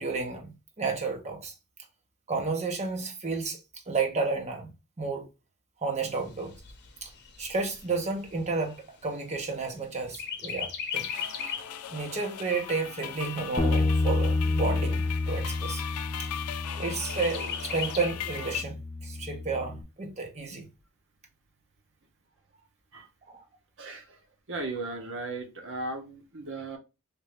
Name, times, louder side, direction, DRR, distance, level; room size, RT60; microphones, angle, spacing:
voice 1, 0.0-1.5 2.3-3.6 3.9-4.7 5.0-5.3 5.8-6.5 7.0-7.1 7.4-11.1 11.9-15.8 16.2-16.3 16.8-20.7 23.3-23.4, right 4 dB, 30° right, 0.9 m, -32 dB
Chirp tweet, 6.0-9.7 10.1-11.8 12.2-12.3 12.7-13.7 14.3-14.4 14.7-14.8 15.3-15.8 17.0-18.1, left 6 dB, 50° left, 0.8 m, -38 dB
sound 1, 10.9-18.6, left 10 dB, 90° left, 0.5 m, -38 dB
Bass guitar, 13.6-19.8, left 2 dB, 15° left, 0.4 m, -29 dB
voice 2, 23.8-24.2 24.5-26.8, right 2 dB, 60° right, 1.0 m, -36 dB
3.5 x 2.6 x 3.1 m
head